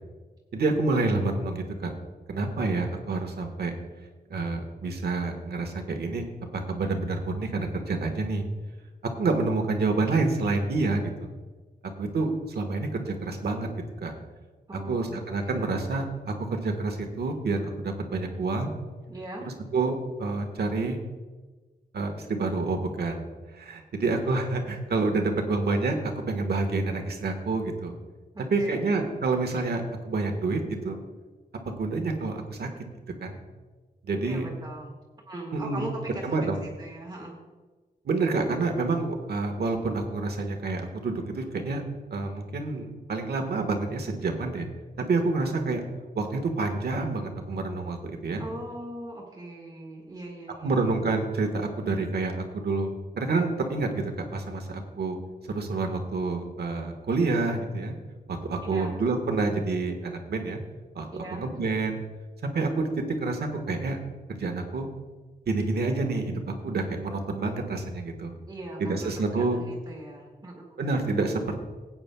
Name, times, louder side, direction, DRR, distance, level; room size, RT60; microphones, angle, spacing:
voice 1, 0.5-1.9 2.3-3.7 4.3-6.3 6.5-8.5 9.0-11.3 12.0-13.7 14.0-14.1 14.9-18.7 19.7-21.0 21.9-23.3 23.5-27.9 28.5-31.0 31.6-32.7 33.2-33.4 34.0-34.5 35.5-35.9 36.2-36.6 38.0-41.8 42.1-44.7 45.1-45.8 46.1-48.4 50.6-55.2 55.5-57.9 58.3-60.6 60.9-62.0 62.4-64.0 64.3-64.9 65.5-68.4 68.8-69.6 70.8-71.6, right 3 dB, 80° right, 5 dB, 1.4 m, -28 dB
voice 2, 14.7-15.2 19.1-19.5 28.3-29.0 34.2-35.0 35.2-37.3 48.4-50.8 58.6-58.9 61.1-61.4 68.5-70.8, right 1 dB, 25° right, -1 dB, 1.7 m, -40 dB
18.0 x 8.8 x 2.3 m, 1.3 s
wide cardioid pair, 150°, 16 cm